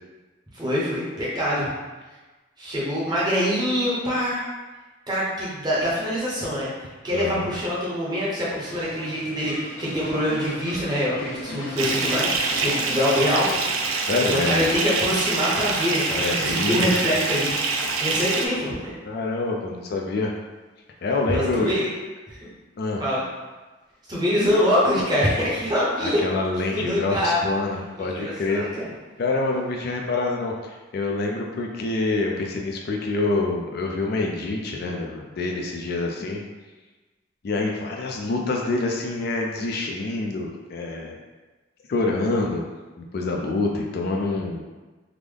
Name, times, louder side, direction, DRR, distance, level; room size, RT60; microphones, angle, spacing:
voice 1, 0.5-1.7 2.6-4.4 5.1-6.7 7.0-14.0 14.3-17.5 18.0-18.9 21.3-21.9 22.3-22.5 23.0-23.2 24.1-26.2 26.7-27.4 28.0-28.9, equal, 20° right, -7 dB, 0.8 m, -24 dB
voice 2, 7.1-7.5 14.1-14.7 16.1-17.1 19.1-20.3 21.0-21.8 22.8-23.0 26.0-28.6 29.2-36.4 37.4-41.2 41.9-42.6 43.1-44.6, left 3 dB, 50° left, 0 dB, 0.3 m, -26 dB
sound 1, 8.6-13.8, left 1 dB, 85° left, 0.9 m, -39 dB
Bathtub (filling or washing) / Fill (with liquid), 11.8-18.5, right 3 dB, 90° right, 0.4 m, -25 dB
3.6 x 2.0 x 3.3 m, 1.2 s
head